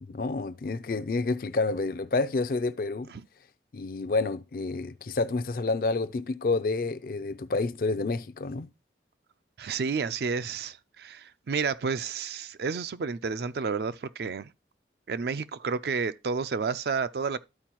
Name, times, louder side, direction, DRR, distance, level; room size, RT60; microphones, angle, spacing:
voice 1, 0.0-3.1 3.7-8.7, left 3 dB, 55° left, 0.4 m, -29 dB
voice 2, 9.6-14.5 15.1-17.4, right 5 dB, 65° right, 0.4 m, -31 dB
12.5 x 4.5 x 2.9 m
head